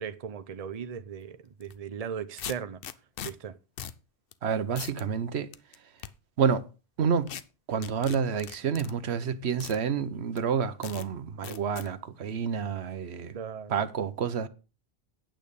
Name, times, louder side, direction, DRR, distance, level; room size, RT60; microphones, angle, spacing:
voice 1, 0.0-2.8 3.2-3.6 13.3-13.8, right 7 dB, 40° right, 0.7 m, -37 dB
sound 1, 1.6-1.8 2.4-3.3 3.8-4.0 4.3-4.4 4.8-5.0 5.5-6.1 7.3-7.4 7.8-8.9 9.6-9.8 10.4-10.5 10.8-11.1 11.4-11.9, left 9 dB, 65° left, 0.8 m, -40 dB
voice 2, 4.4-5.5 6.4-6.7 7.0-7.3 7.7-13.4 13.7-14.5, right 6 dB, 80° right, 1.1 m, -29 dB
9.0 x 8.5 x 5.3 m
omnidirectional pair, 1.1 m